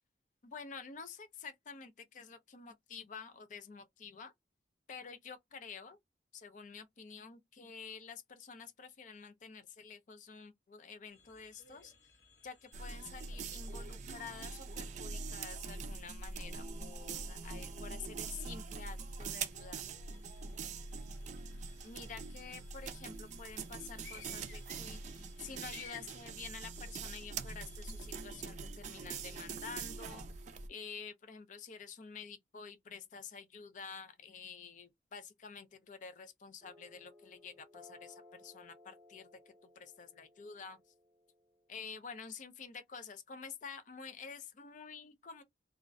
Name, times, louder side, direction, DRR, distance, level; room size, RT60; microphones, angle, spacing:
voice 1, 0.4-4.3 4.9-6.0 6.3-11.9 12.4-19.8 21.8-30.4 30.7-40.8 41.7-45.4, left 5 dB, 45° left, 0.5 m, -49 dB
sound 1, 11.1-28.4, left 6 dB, 75° left, 0.9 m, -61 dB
sound 2, 12.7-30.7, right 4 dB, 45° right, 0.3 m, -44 dB
sound 3, 36.6-41.7, left 2 dB, 15° right, 0.7 m, -60 dB
2.4 x 2.1 x 2.4 m
head